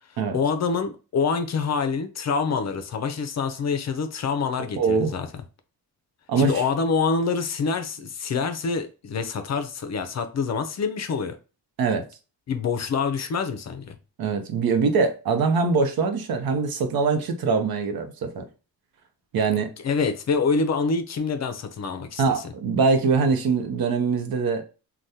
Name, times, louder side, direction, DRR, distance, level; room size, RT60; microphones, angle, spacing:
voice 1, 0.3-5.3 6.4-11.4 12.5-14.0 19.8-22.4, left 5 dB, 45° left, 0.5 m, -26 dB
voice 2, 4.8-5.2 6.3-6.6 11.8-12.0 14.2-18.5 19.3-19.7 22.2-24.6, right 4 dB, 65° right, 0.7 m, -23 dB
3.4 x 2.2 x 2.7 m
cardioid pair, 100°, 38 cm